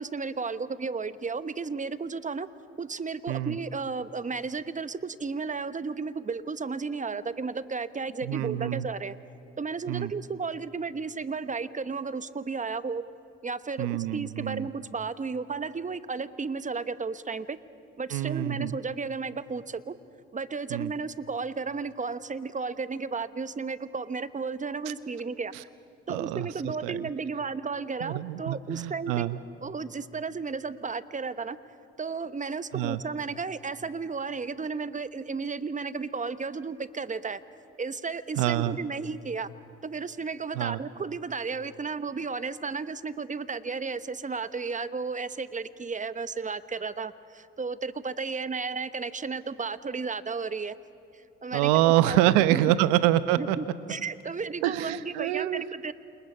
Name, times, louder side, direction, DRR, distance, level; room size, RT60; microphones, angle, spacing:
voice 1, 0.0-2.5 2.8-9.2 9.6-13.0 13.4-17.6 18.0-20.0 20.3-25.5 26.1-29.3 29.6-31.6 32.0-37.4 37.8-39.5 39.8-50.7 51.4-52.2 52.5-52.6 53.4-55.9, right 4 dB, 25° right, 13 dB, 1.0 m, -33 dB
voice 2, 8.2-8.9 9.9-10.1 13.8-14.7 18.1-18.7 20.7-20.9 25.5-25.6 26.1-26.5 26.8-27.1 28.0-29.4 32.7-33.0 38.4-38.8 40.5-40.8 51.5-53.6 54.6-55.7, right 14 dB, 80° right, 14 dB, 0.8 m, -26 dB
29.0 x 28.0 x 5.5 m, 2.5 s
hypercardioid pair, 60°, 29 cm